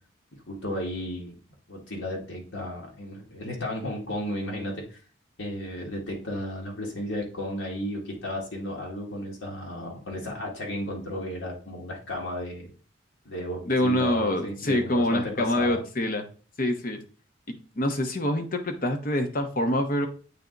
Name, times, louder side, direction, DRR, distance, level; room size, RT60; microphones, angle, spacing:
voice 1, 0.5-1.4 1.7-5.0 5.4-12.7 13.2-15.8, left 1 dB, 80° left, -1 dB, 1.8 m, -34 dB
voice 2, 13.7-16.2 16.6-17.0 17.5-20.1, left 1 dB, 45° left, 6 dB, 0.9 m, -26 dB
8.3 x 3.5 x 3.9 m, 0.39 s
head